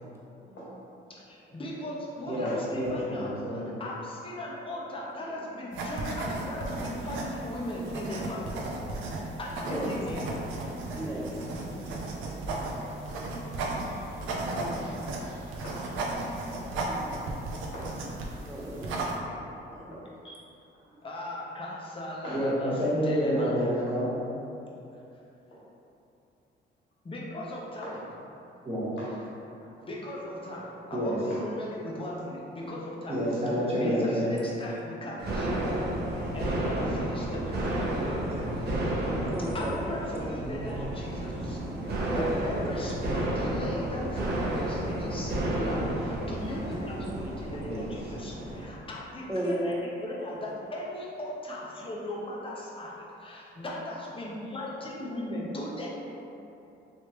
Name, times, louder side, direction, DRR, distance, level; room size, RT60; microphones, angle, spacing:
voice 1, 1.1-8.6 9.4-10.4 21.0-23.7 27.0-27.9 29.8-33.2 33.5-39.1 39.4-41.6 42.1-55.9, left 1 dB, 25° left, -4 dB, 0.8 m, -38 dB
voice 2, 2.3-3.6 14.7-14.9 15.2-15.6 16.2-16.3 22.3-22.5 22.8-24.1 28.6-28.9 30.9-31.2 33.1-34.3 38.4-38.5 40.4-40.6 47.6-47.9, equal, 30° right, -8 dB, 1.4 m, -29 dB
sound 1, 5.7-19.2, right 2 dB, 90° right, 0.5 m, -35 dB
voice 3, 10.9-11.3 11.6-11.8 13.7-14.1 14.5-14.8 16.9-17.4 18.3-19.2 33.8-33.9 39.3-39.8 40.1-40.3 42.1-42.2 42.5-42.7 47.0-47.3 49.3-49.8, right 1 dB, 15° right, -5 dB, 0.8 m, -35 dB
voice 4, 11.9-12.7 13.1-13.2 15.6-15.8 16.2-16.4 17.7-17.9 19.7-20.4 20.7-20.8 22.2-22.4 25.5-25.6 27.8-28.0 29.0-29.7 30.6-30.7 31.2-31.4, equal, 70° left, -9 dB, 1.4 m, -43 dB
sound 2, 35.2-48.6, right 1 dB, 55° right, 0.7 m, -31 dB
3.2 x 3.1 x 3.0 m, 2.8 s
cardioid pair, 90°, 20 cm